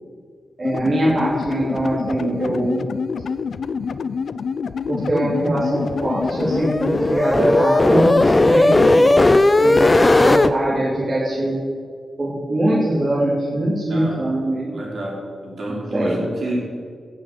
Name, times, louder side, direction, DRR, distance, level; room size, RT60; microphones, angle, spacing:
sound 1, 0.6-7.0, left 6 dB, 65° left, 0.5 m, -27 dB
voice 1, 0.6-2.8 4.9-9.3 9.6-9.9 10.2-11.6 12.2-14.7 15.7-16.3, right 1 dB, 35° right, -7 dB, 3.3 m, -22 dB
sound 2, 5.8-10.5, left 2 dB, 20° left, 0.5 m, -16 dB
voice 2, 13.9-14.4 14.7-16.6, right 1 dB, 60° right, -4 dB, 4.6 m, -29 dB
16.5 x 6.6 x 8.0 m, 2.1 s
wide cardioid pair, 105°, 0 cm